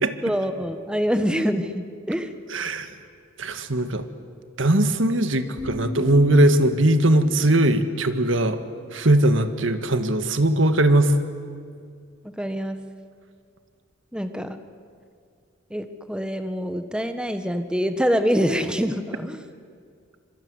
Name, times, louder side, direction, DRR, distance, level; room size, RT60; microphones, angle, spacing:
voice 1, 0.2-2.3 12.4-12.8 14.1-14.6 15.7-19.4, equal, 5° right, 8 dB, 1.4 m, -25 dB
voice 2, 2.5-2.9 3.4-4.1 4.6-8.6 8.9-11.1, right 1 dB, 70° right, 9 dB, 1.9 m, -20 dB
sound 1, 5.6-9.5, left 2 dB, 25° right, 5.8 m, -38 dB
25.5 x 24.0 x 9.7 m, 2.2 s
head